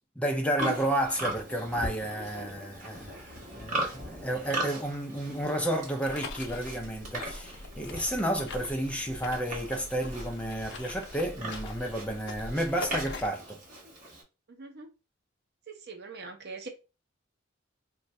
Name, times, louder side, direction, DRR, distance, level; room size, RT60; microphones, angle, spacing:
voice 1, 0.2-13.6, right 1 dB, 5° left, 0.5 m, -31 dB
Livestock farm animals working animals, 0.6-14.2, right 1 dB, 40° right, 1.2 m, -39 dB
sound 1, 6.0-13.3, left 3 dB, 65° left, 0.6 m, -43 dB
voice 2, 14.6-14.9 15.7-16.7, right 4 dB, 55° right, 0.7 m, -42 dB
2.5 x 2.3 x 4.0 m
head